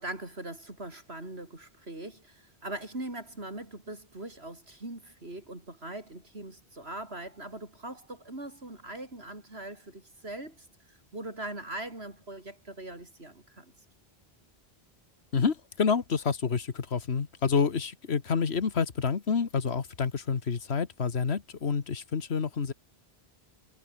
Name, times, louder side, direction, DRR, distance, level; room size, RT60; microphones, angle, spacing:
voice 1, 0.0-13.7, right 2 dB, 80° right, 6.1 m, -41 dB
voice 2, 15.3-22.7, left 5 dB, 85° left, 1.7 m, -28 dB
omnidirectional pair, 1.1 m